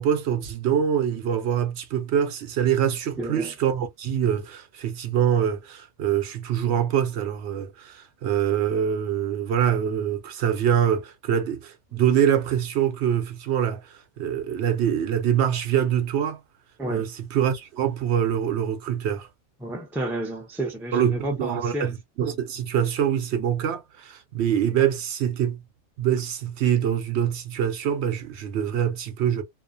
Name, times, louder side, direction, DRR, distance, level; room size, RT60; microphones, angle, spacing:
voice 1, 0.0-16.4 16.9-19.3 20.9-25.6 26.0-29.4, right 9 dB, 70° right, 0.8 m, -24 dB
voice 2, 3.2-3.5 11.9-12.0 16.8-17.1 19.6-22.3, right 1 dB, 5° right, 0.4 m, -31 dB
2.4 x 2.1 x 2.4 m
omnidirectional pair, 1.2 m